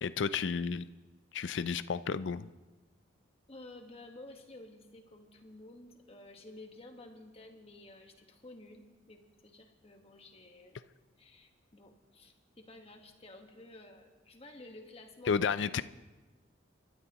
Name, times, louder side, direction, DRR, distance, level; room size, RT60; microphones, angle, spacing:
voice 1, 0.0-0.9 1.3-2.5 15.3-15.8, left 6 dB, 70° left, 14 dB, 0.4 m, -32 dB
voice 2, 3.5-10.8 11.2-15.4 15.7-15.8, left 2 dB, 30° left, 4 dB, 1.4 m, -52 dB
28.0 x 13.5 x 3.0 m, 1.2 s
head